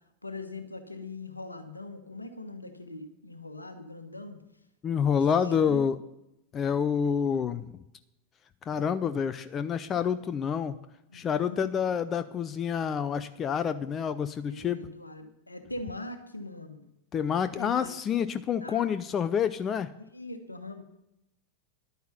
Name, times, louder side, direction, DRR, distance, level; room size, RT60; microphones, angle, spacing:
voice 1, 0.2-4.4 5.1-5.9 11.1-11.9 14.4-16.9 17.5-17.9 18.6-18.8 20.1-20.8, left 2 dB, 85° left, 8 dB, 1.3 m, -41 dB
voice 2, 4.8-6.0 6.5-7.7 8.7-10.8 11.1-14.8 17.1-19.9, left 7 dB, 25° left, 13 dB, 0.5 m, -28 dB
11.5 x 9.3 x 5.7 m, 0.88 s
figure-of-eight pair, 90°, 0 cm